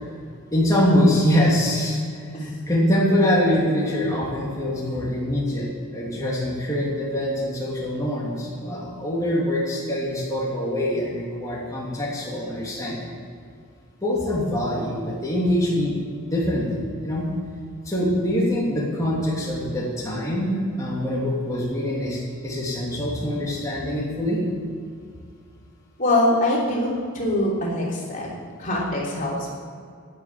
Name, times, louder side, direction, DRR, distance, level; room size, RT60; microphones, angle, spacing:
voice 1, 0.5-5.7 5.9-13.1 14.0-17.3 17.8-24.4, equal, 15° left, -6 dB, 2.9 m, -24 dB
voice 2, 26.0-29.5, left 1 dB, 35° left, -4 dB, 3.3 m, -23 dB
10.5 x 9.4 x 8.6 m, 2.1 s
head